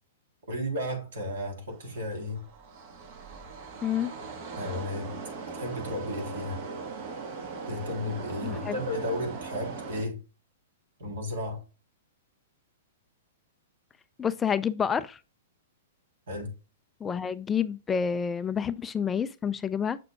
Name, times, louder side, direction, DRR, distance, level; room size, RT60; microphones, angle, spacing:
voice 1, 0.5-2.4 4.5-5.2 5.5-6.6 7.7-10.2 11.0-11.6 16.3-16.5, left 1 dB, 60° right, 3.3 m, -33 dB
sound 1, 1.7-10.0, right 4 dB, 45° right, 1.6 m, -40 dB
voice 2, 3.8-4.1 8.4-8.8 14.2-15.2 17.0-20.0, left 7 dB, 15° left, 0.3 m, -28 dB
7.5 x 6.6 x 2.3 m
figure-of-eight pair, 105°, 0 cm